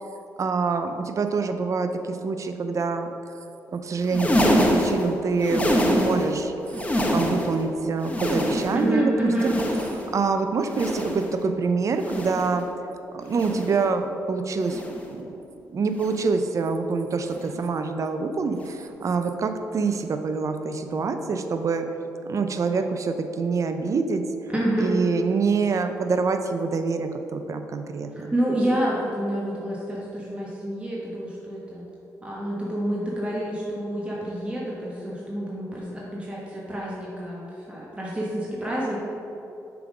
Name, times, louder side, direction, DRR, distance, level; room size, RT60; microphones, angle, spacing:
voice 1, 0.4-3.1 3.7-6.5 7.1-9.6 10.1-12.7 13.1-14.8 15.1-15.4 15.7-21.9 22.2-24.2 24.8-28.3, right 4 dB, 50° right, 7 dB, 0.5 m, -26 dB
sound 1, 4.0-6.4 6.7-7.6 8.0-8.9 9.3-10.2 10.6-11.4 11.9-12.6 13.3-13.8 14.6-15.1 15.9-16.4 17.3-17.6 18.6-18.8 19.9-20.0, equal, 20° left, 1.1 m, -26 dB
voice 2, 8.7-9.5 24.5-25.0 28.1-31.8 32.2-39.0, right 1 dB, 15° right, -6 dB, 1.2 m, -28 dB
6.8 x 3.7 x 4.9 m, 2.9 s
supercardioid pair, 60°, 7 cm